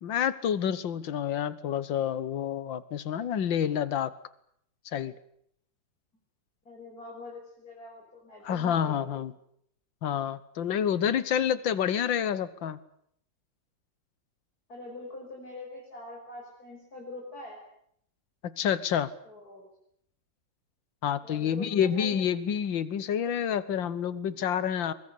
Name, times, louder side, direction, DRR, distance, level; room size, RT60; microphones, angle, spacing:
voice 1, 0.0-4.1 4.9-5.1 8.4-9.3 10.0-12.8 18.4-19.1 21.0-24.9, left 9 dB, 85° left, 16 dB, 1.9 m, -28 dB
voice 2, 6.6-9.2 14.7-17.6 19.2-19.7 21.2-22.1, left 2 dB, 50° left, -1 dB, 6.5 m, -44 dB
24.0 x 22.5 x 8.4 m, 0.69 s
omnidirectional pair, 2.0 m